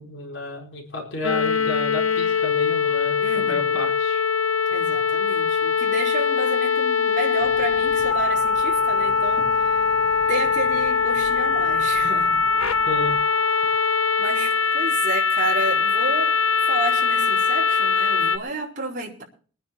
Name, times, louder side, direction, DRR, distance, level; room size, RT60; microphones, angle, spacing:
voice 1, 0.0-4.2 12.9-13.2, left 2 dB, 60° left, 1 dB, 4.4 m, -32 dB
sound 1, 1.2-18.4, left 5 dB, 85° left, 1.6 m, -22 dB
voice 2, 3.2-3.8 4.7-9.9 10.3-12.5 14.2-16.4 16.6-19.2, right 2 dB, 40° right, -2 dB, 4.7 m, -31 dB
sound 2, 7.4-13.2, equal, 10° left, 3.7 m, -46 dB
23.0 x 9.8 x 4.5 m, 0.41 s
head